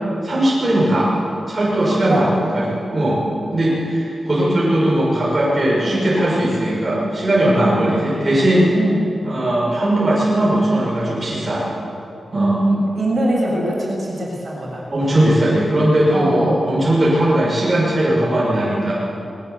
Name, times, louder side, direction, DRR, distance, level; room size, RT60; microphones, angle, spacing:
voice 1, 0.2-1.1 1.5-3.2 3.5-8.7 9.2-11.6 12.3-12.6 14.9-18.9, right 1 dB, 30° right, -6 dB, 6.0 m, -18 dB
voice 2, 2.0-2.3 5.8-6.1 7.6-7.9 8.7-9.1 12.3-14.9 16.1-16.6, right 1 dB, 50° right, -3 dB, 7.3 m, -22 dB
21.0 x 19.0 x 8.3 m, 2.7 s
wide cardioid pair, 100°, 0 cm